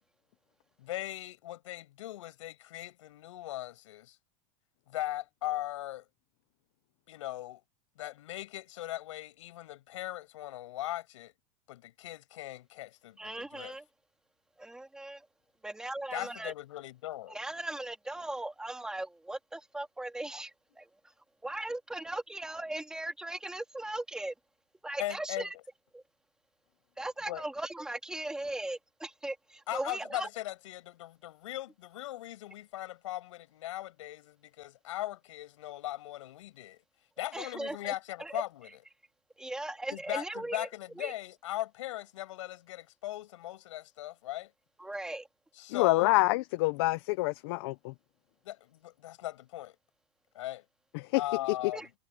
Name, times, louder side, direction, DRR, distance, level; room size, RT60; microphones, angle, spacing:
voice 1, 0.8-4.2 4.9-6.0 7.1-7.6 8.0-11.3 11.7-13.7 16.1-17.4 25.0-25.5 27.3-27.4 29.7-36.8 37.2-38.7 39.9-44.5 45.6-46.2 48.4-49.7 50.3-50.6 51.1-51.9, left 15 dB, 90° left, 7.8 m, -39 dB
voice 2, 13.2-13.8 14.6-15.3 15.6-16.5 17.3-20.9 21.4-24.3 24.8-25.5 25.9-26.0 27.0-30.3 37.3-37.9 38.2-38.4 39.4-40.7 41.0-41.1 44.8-45.3 51.7-51.9, right 1 dB, 5° right, 3.0 m, -38 dB
voice 3, 45.7-47.9 50.9-51.2, left 21 dB, 55° left, 0.6 m, -27 dB
supercardioid pair, 165°, 15 cm